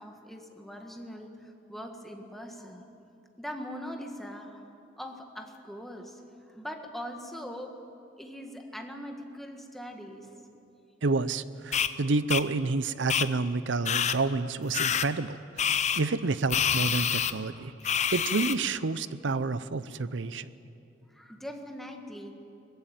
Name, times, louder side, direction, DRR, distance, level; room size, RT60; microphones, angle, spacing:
voice 1, 0.0-2.9 3.4-4.6 5.0-7.7 8.2-10.3 17.6-17.7 21.1-22.4, equal, ahead, 3 dB, 1.6 m, -41 dB
voice 2, 11.0-15.7 16.0-20.5, right 3 dB, 70° right, 16 dB, 0.6 m, -29 dB
sound 1, 11.7-11.9 12.3-12.4 13.1-13.3 13.8-14.2 14.7-15.1 15.6-16.0 16.5-17.3 17.8-18.5, left 8 dB, 40° left, 0.6 m, -27 dB
20.0 x 15.0 x 9.1 m, 2.7 s
head